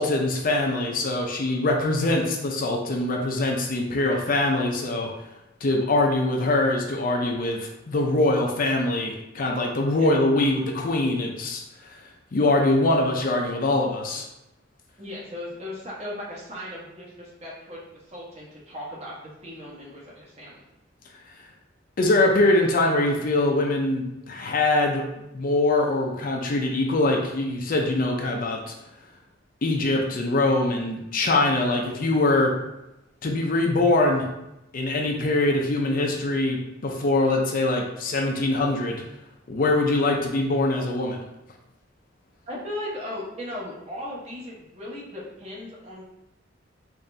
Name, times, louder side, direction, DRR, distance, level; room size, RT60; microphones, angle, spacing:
voice 1, 0.0-5.1 5.6-11.6 12.3-14.3 22.0-25.1 25.3-28.7 29.6-32.5 33.2-34.3 34.7-39.0 39.5-41.2, left 2 dB, 45° left, 1 dB, 0.5 m, -23 dB
voice 2, 15.0-19.1 19.4-20.6 42.5-46.0, left 1 dB, 35° right, -5 dB, 1.1 m, -37 dB
3.9 x 2.6 x 3.3 m, 0.89 s
head